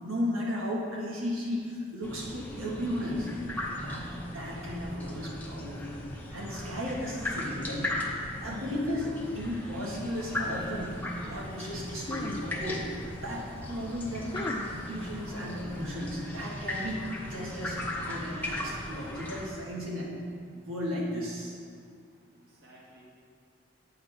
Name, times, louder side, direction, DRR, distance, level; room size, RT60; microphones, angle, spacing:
voice 1, 0.0-3.3 3.8-6.0 6.3-7.9 8.4-12.8 13.2-14.3 14.7-20.1 20.5-21.6, left 1 dB, 90° right, -4 dB, 1.5 m, -35 dB
sound 1, 2.0-19.5, left 1 dB, 10° left, 0.7 m, -37 dB
sound 2, 9.8-15.9, left 2 dB, 25° left, 0.3 m, -44 dB
voice 2, 21.7-23.0, right 1 dB, 50° right, -5 dB, 1.4 m, -59 dB
9.1 x 6.4 x 3.4 m, 2.2 s
head